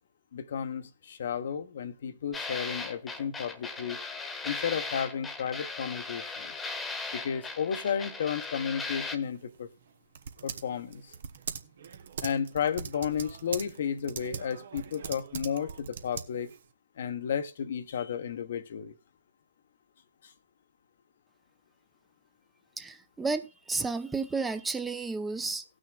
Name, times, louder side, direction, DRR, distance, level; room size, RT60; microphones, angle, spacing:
voice 1, 0.3-4.0 4.4-6.5 7.1-9.7 10.4-11.0 12.2-16.5 17.0-18.9, left 7 dB, 65° left, 1.0 m, -33 dB
sound 1, 2.3-9.2, left 3 dB, 10° left, 1.2 m, -38 dB
Typing, 9.2-16.7, right 7 dB, 65° right, 1.0 m, -42 dB
voice 2, 22.8-25.6, right 4 dB, 10° right, 0.7 m, -32 dB
19.0 x 6.4 x 2.4 m
hypercardioid pair, 125°, 0 cm